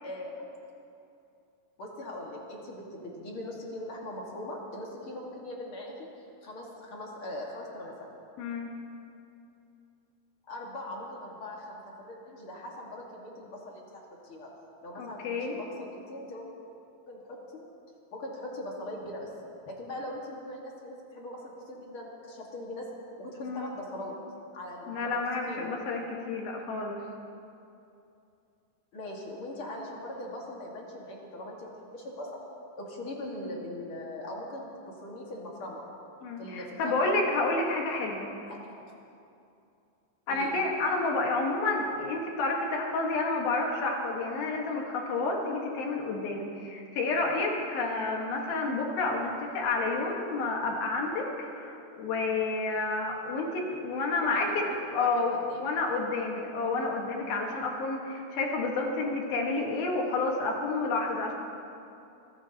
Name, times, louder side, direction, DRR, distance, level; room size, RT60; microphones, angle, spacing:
voice 1, 0.0-0.5 1.8-6.1 6.4-8.1 10.4-14.5 14.8-16.5 17.1-17.7 18.1-19.3 19.7-22.9 23.2-24.1 24.5-25.7 28.9-32.3 32.8-35.8 36.4-37.1 38.5-38.6 40.3-40.6 54.2-55.6, left 1 dB, 45° left, -2 dB, 1.7 m, -40 dB
voice 2, 8.4-8.7 15.0-15.6 23.4-23.7 24.9-26.0 26.3-27.0 36.2-38.3 40.3-54.7 54.9-61.3, left 3 dB, 65° left, 0 dB, 3.2 m, -30 dB
25.5 x 16.0 x 2.9 m, 2.7 s
omnidirectional pair, 5.0 m